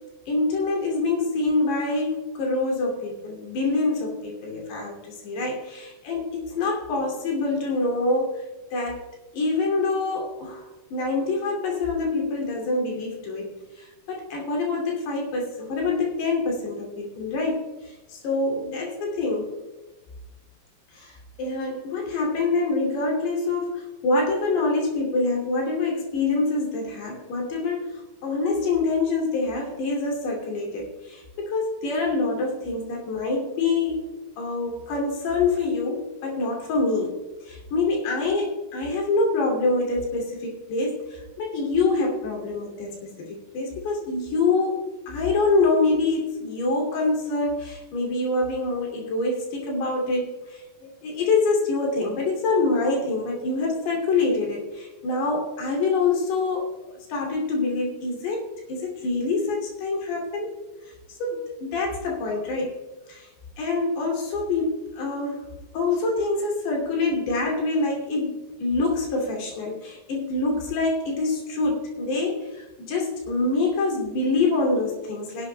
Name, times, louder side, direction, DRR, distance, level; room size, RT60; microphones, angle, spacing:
voice 1, 0.3-8.4 8.7-9.1 9.3-19.5 20.9-60.5 60.9-61.0 61.2-62.8 63.1-63.3 63.6-65.5 65.7-75.5, left 3 dB, 85° left, -1 dB, 4.8 m, -26 dB
17.5 x 11.5 x 2.2 m, 1.1 s
omnidirectional pair, 4.6 m